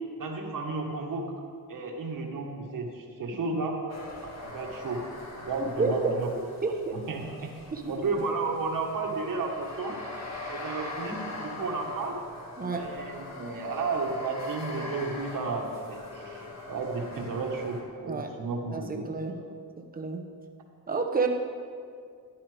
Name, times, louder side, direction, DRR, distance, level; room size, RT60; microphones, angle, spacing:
voice 1, 0.2-1.3 1.7-3.8 4.2-5.0 5.4-6.3 6.9-7.5 7.9-10.0 10.5-12.2 12.7-19.1, right 3 dB, 55° right, 1 dB, 1.7 m, -33 dB
sound 1, 3.9-17.8, left 2 dB, 40° left, 1.9 m, -42 dB
voice 2, 5.6-6.1 6.6-7.0 7.7-7.9 12.6-12.9 18.1-18.3 18.7-19.4 19.9-20.3 20.9-21.3, right 4 dB, 20° right, 3 dB, 1.0 m, -29 dB
14.5 x 11.5 x 3.5 m, 2.2 s
wide cardioid pair, 160°, 40 cm